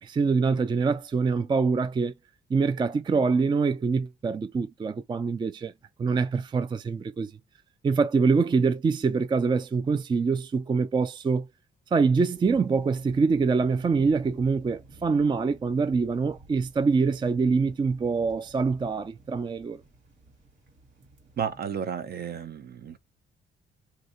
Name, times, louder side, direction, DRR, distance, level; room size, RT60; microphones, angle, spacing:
voice 1, 0.0-2.1 2.5-5.7 6.0-7.3 7.8-11.5 11.9-19.8, right 4 dB, 25° right, 0.4 m, -25 dB
sound 1, 12.3-21.6, right 3 dB, 70° right, 1.8 m, -53 dB
voice 2, 21.4-23.0, right 7 dB, 55° right, 0.7 m, -32 dB
2.8 x 2.4 x 4.3 m
cardioid pair, 90°, 20 cm